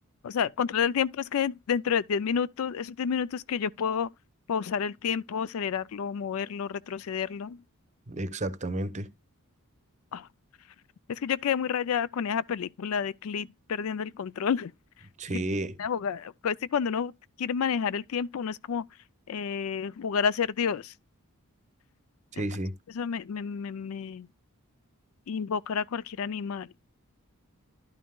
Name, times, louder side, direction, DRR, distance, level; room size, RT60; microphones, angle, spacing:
voice 1, 0.2-4.1 4.5-7.6 10.1-10.3 11.1-14.7 15.3-15.4 15.8-17.1 17.4-18.9 19.3-20.9 22.3-22.5 22.9-24.3 25.3-26.9, left 7 dB, 70° left, 0.4 m, -30 dB
voice 2, 8.1-9.1 15.2-15.8 22.3-22.8, right 1 dB, 35° right, 0.7 m, -31 dB
11.5 x 5.6 x 2.3 m
head